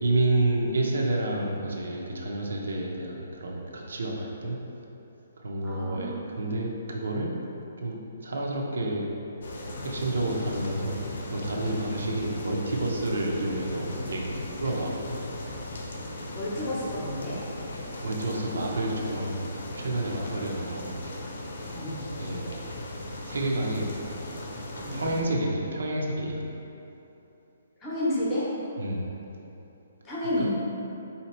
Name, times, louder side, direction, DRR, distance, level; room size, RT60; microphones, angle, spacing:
voice 1, 0.0-4.6 5.4-7.3 7.8-9.1 9.8-11.0 11.3-15.1 18.0-21.0 22.2-22.6 23.2-23.9 24.9-26.4 28.8-29.1 30.4-30.5, right 2 dB, 80° right, -1 dB, 0.7 m, -29 dB
voice 2, 5.6-6.2 16.3-17.4 21.7-22.0 24.8-25.0 27.8-28.4 30.0-30.4, left 1 dB, 10° left, -9 dB, 0.7 m, -30 dB
sound 1, 9.4-25.2, left 1 dB, 60° left, 0.6 m, -37 dB
3.9 x 2.8 x 4.3 m, 2.9 s
hypercardioid pair, 175°, 0 cm